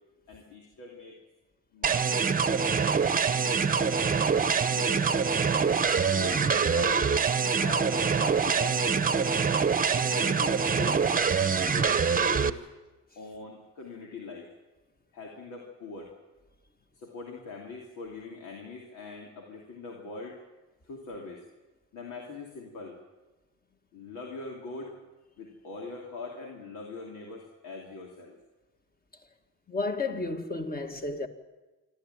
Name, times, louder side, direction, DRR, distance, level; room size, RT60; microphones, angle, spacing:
voice 1, 0.3-1.2 1.7-2.1 3.2-5.1 5.6-9.0 9.9-11.1 11.4-12.6 13.2-14.5 15.1-16.1 17.0-20.4 20.9-21.4 21.9-23.0 23.9-24.9 25.4-28.4, left 3 dB, 90° left, 2.9 m, -42 dB
sound 1, 1.8-12.5, right 5 dB, 30° right, 0.9 m, -25 dB
voice 2, 29.7-31.3, left 3 dB, 30° left, 2.1 m, -32 dB
26.5 x 12.5 x 9.1 m
cardioid pair, 90°, 30 cm